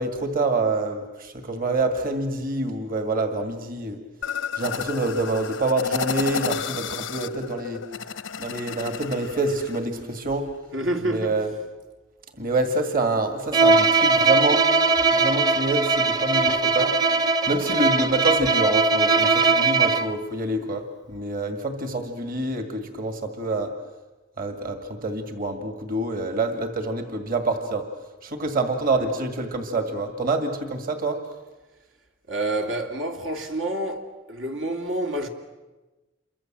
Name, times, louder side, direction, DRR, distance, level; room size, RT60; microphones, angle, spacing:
voice 1, 0.0-4.0 4.6-7.8 8.4-10.5 11.0-11.5 12.4-14.6 15.1-16.9 17.5-23.7 24.4-27.9 28.2-31.2, right 2 dB, 50° right, 2.1 m, -26 dB
sound 1, 4.2-9.8, left 6 dB, 85° left, 0.8 m, -32 dB
voice 2, 10.7-11.4 29.0-29.1 32.3-35.3, right 1 dB, 80° right, 2.6 m, -28 dB
Bowed string instrument, 13.5-20.2, right 4 dB, 20° right, 0.9 m, -20 dB
28.0 x 24.0 x 7.6 m
head